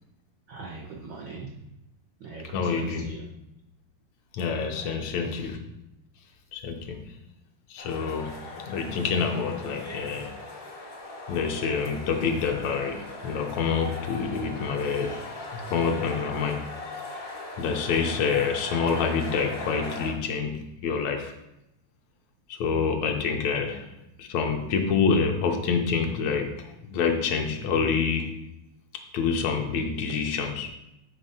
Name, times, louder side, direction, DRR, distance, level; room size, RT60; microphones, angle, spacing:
voice 1, 0.5-1.7 2.2-3.3 4.8-5.4 23.6-23.7, right 3 dB, 85° right, 0 dB, 1.0 m, -42 dB
voice 2, 2.5-3.0 4.3-5.6 6.5-7.1 7.7-10.3 11.3-15.2 15.5-16.6 17.6-21.3 22.5-23.9 24.2-28.4 28.9-30.7, left 5 dB, 75° left, 3 dB, 1.9 m, -27 dB
sound 1, 7.8-20.1, left 2 dB, 40° left, 0.6 m, -39 dB
8.3 x 3.6 x 5.6 m, 0.87 s
omnidirectional pair, 3.4 m